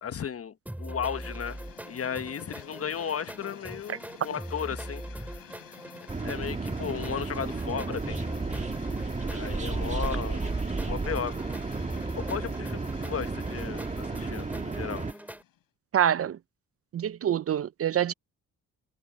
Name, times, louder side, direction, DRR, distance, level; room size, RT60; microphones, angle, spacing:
voice 1, 0.0-1.6 1.8-5.5 6.2-8.2 9.3-10.5 10.8-11.4 11.7-11.8 12.1-15.1, left 7 dB, 45° left, 1.2 m, -35 dB
sound 1, 0.7-15.4, right 1 dB, 5° right, 2.4 m, -42 dB
sound 2, 1.1-15.6, left 12 dB, 85° left, 5.8 m, -51 dB
sound 3, 6.1-15.1, right 3 dB, 20° right, 1.5 m, -32 dB
voice 2, 15.9-16.4 16.9-18.1, right 10 dB, 45° right, 0.5 m, -26 dB
cardioid pair, 85°, 32 cm